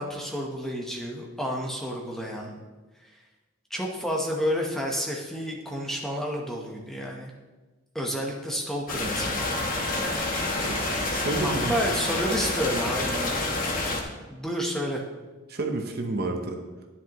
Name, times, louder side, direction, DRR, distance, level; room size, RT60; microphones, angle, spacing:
voice 1, 0.0-2.6 3.0-3.2 3.7-7.3 7.9-9.5 11.4-13.6 14.3-15.0, equal, ahead, -1 dB, 0.9 m, -30 dB
sound 1, 8.9-14.0, left 2 dB, 40° left, 1.1 m, -28 dB
Wind instrument woodwind instrument, 9.1-13.3, right 2 dB, 15° right, 2.2 m, -40 dB
voice 2, 10.6-11.7 15.5-16.6, right 2 dB, 45° right, 4 dB, 0.8 m, -30 dB
10.5 x 9.8 x 3.0 m, 1.2 s
head